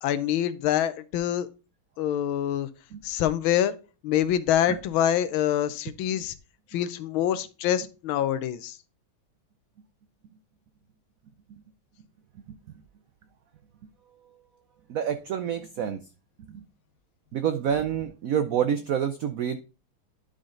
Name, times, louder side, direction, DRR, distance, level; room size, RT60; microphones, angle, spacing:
voice 1, 0.0-1.5 2.0-2.7 3.0-3.7 4.0-6.3 6.7-8.8, left 11 dB, 85° left, 14 dB, 1.5 m, -25 dB
voice 2, 12.5-12.8 14.9-16.0 16.5-16.6 17.3-19.6, right 8 dB, 85° right, 9 dB, 0.7 m, -28 dB
11.0 x 3.8 x 3.8 m, 0.33 s
omnidirectional pair, 2.2 m